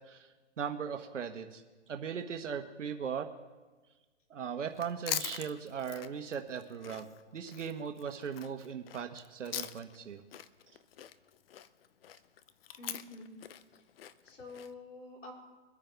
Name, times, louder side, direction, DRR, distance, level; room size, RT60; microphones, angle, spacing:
voice 1, 0.1-1.6 1.9-3.3 4.3-7.1 7.3-10.2, right 7 dB, 80° right, 5 dB, 1.3 m, -38 dB
Chewing mastication, 4.7-10.0 10.3-14.7, left 10 dB, 50° left, 0.8 m, -43 dB
voice 2, 12.8-13.3 13.7-13.8 14.2-15.3, left 2 dB, 90° left, -2 dB, 4.6 m, -48 dB
24.0 x 9.9 x 3.5 m, 1.3 s
hypercardioid pair, 150°, 37 cm